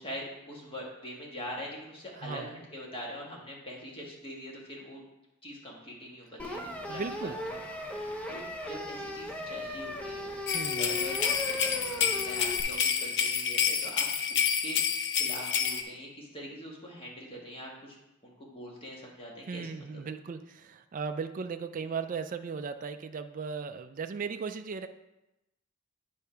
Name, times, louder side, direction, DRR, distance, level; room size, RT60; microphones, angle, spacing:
voice 1, 0.0-5.0 5.4-7.6 8.0-10.3 10.7-17.9 18.2-20.0, equal, 25° left, -2 dB, 1.4 m, -43 dB
voice 2, 2.2-2.5 6.9-7.4 10.5-10.9 19.5-24.9, right 5 dB, 35° right, 8 dB, 0.3 m, -37 dB
sound 1, 6.4-12.6, left 1 dB, 5° left, 0.7 m, -37 dB
sound 2, 10.5-15.8, left 7 dB, 50° left, 0.6 m, -29 dB
8.3 x 3.5 x 5.6 m, 0.94 s
head